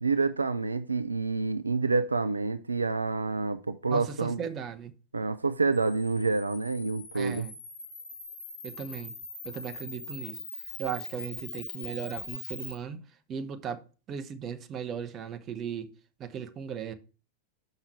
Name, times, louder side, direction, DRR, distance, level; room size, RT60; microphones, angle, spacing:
voice 1, 0.0-4.4 5.1-7.5, right 3 dB, 85° right, 0.4 m, -28 dB
voice 2, 3.9-4.9 7.1-7.5 8.6-9.1 9.4-10.4 10.8-13.0 13.3-13.8 14.1-15.9 16.2-16.9, right 7 dB, 30° right, 1.0 m, -37 dB
Camera, 5.7-12.7, left 3 dB, 65° left, 2.8 m, -42 dB
6.7 x 5.7 x 4.5 m
figure-of-eight pair, 90°, 0 cm